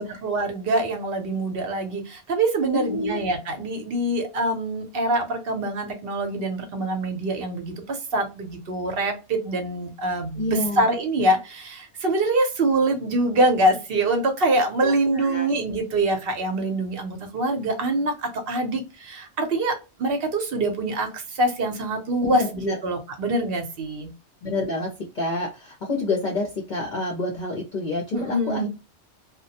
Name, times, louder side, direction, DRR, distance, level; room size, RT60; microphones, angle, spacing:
voice 1, 0.0-24.1 28.1-28.7, right 2 dB, 60° right, 5 dB, 0.9 m, -24 dB
voice 2, 2.7-3.2 10.4-10.8 14.8-15.5 22.2-22.7 24.4-24.9 25.1-28.7, left 2 dB, 50° left, 0 dB, 0.7 m, -28 dB
2.2 x 2.1 x 2.7 m, 0.28 s
omnidirectional pair, 1.1 m